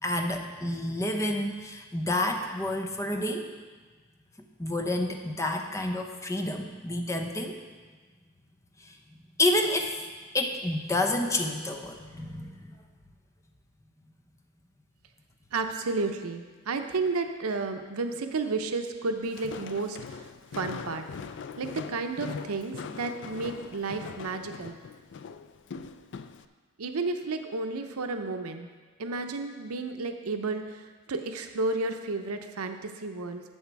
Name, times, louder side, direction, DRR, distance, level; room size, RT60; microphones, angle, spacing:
voice 1, 0.0-3.5 4.6-7.6 8.8-8.9 9.4-10.0 10.3-12.7, left 1 dB, 15° left, 4 dB, 0.8 m, -29 dB
voice 2, 15.5-21.0 21.6-24.7 26.8-28.7 29.0-33.4, right 3 dB, 85° right, 6 dB, 0.7 m, -32 dB
Walk footsteps, 19.2-26.4, left 5 dB, 55° left, 0.4 m, -41 dB
11.0 x 7.5 x 4.6 m, 1.4 s
head